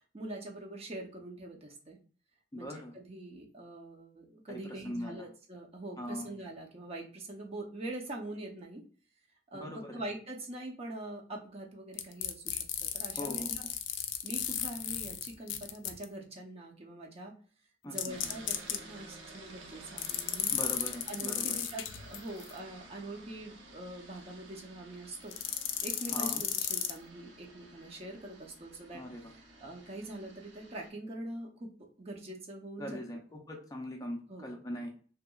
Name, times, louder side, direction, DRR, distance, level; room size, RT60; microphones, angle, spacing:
voice 1, 0.1-2.0 2.6-2.7 2.9-8.8 9.5-13.6 14.2-17.3 17.8-20.5 21.1-25.3 25.8-29.0 29.6-31.7 32.0-33.0 34.3-34.5, right 1 dB, 35° right, 0 dB, 0.6 m, -43 dB
voice 2, 2.5-2.9 4.5-5.3 6.0-6.3 9.5-10.0 13.2-13.5 17.8-18.4 20.5-21.6 26.1-26.4 28.9-29.3 32.8-34.9, left 1 dB, 20° left, 1 dB, 0.4 m, -41 dB
sound 1, 12.0-16.0 18.0-18.8 20.0-22.5 25.3-27.0, left 10 dB, 90° left, 0.4 m, -34 dB
sound 2, 18.1-30.9, right 2 dB, 90° right, 0.6 m, -53 dB
2.8 x 2.3 x 2.3 m, 0.42 s
head